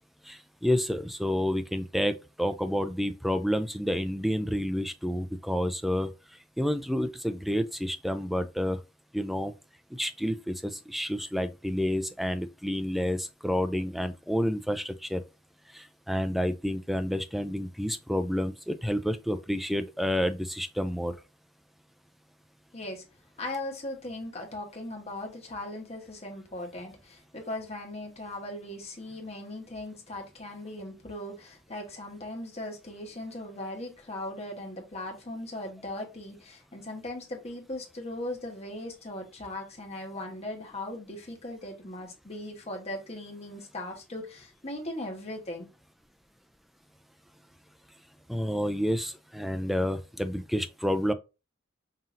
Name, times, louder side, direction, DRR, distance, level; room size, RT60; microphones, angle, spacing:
voice 1, 0.3-6.1 6.6-8.8 9.1-9.5 9.9-15.2 15.7-21.1 48.3-51.1, equal, ahead, 0.4 m, -29 dB
voice 2, 22.7-23.0 23.4-45.7, left 1 dB, 30° left, 1.1 m, -38 dB
5.6 x 2.7 x 2.5 m
head